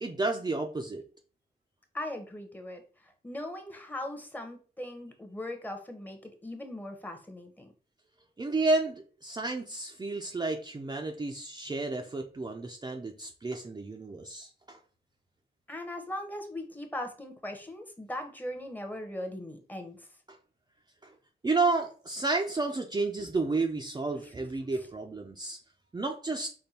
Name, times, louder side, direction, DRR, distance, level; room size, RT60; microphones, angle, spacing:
voice 1, 0.0-1.0 8.4-8.9 9.2-14.8 21.0-21.1 21.4-25.6 25.9-26.5, right 3 dB, 25° right, 2 dB, 0.5 m, -31 dB
voice 2, 1.9-7.7 15.7-20.1 24.2-24.3 24.7-24.9, left 1 dB, 10° left, 5 dB, 0.9 m, -39 dB
5.2 x 2.2 x 4.2 m, 0.39 s
wide cardioid pair, 110°, 18 cm